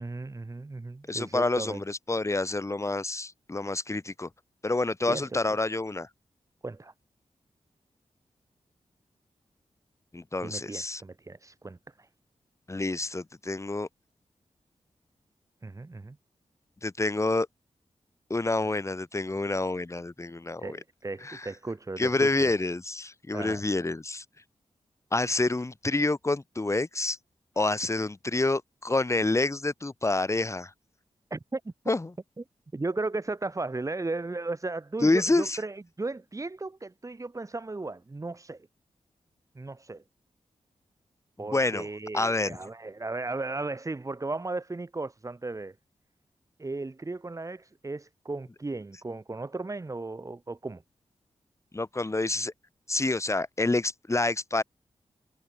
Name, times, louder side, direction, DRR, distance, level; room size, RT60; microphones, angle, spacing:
voice 1, 0.0-1.8 5.1-5.4 6.6-6.9 10.4-12.1 15.6-16.2 20.6-22.5 23.3-23.6 27.6-27.8 31.3-31.7 32.7-38.7 39.5-40.0 41.4-45.7 46.6-50.8, right 3 dB, 25° right, 2.8 m, -36 dB
voice 2, 1.1-4.3 4.6-6.1 10.1-11.0 12.7-13.9 16.8-17.5 18.3-20.8 21.2-21.5 22.0-24.2 25.1-27.2 27.6-30.7 31.9-32.1 35.0-35.6 41.5-41.9 42.1-42.6 51.7-52.5 52.9-54.6, left 2 dB, 25° left, 3.8 m, -28 dB
wide cardioid pair, 120°, 12 cm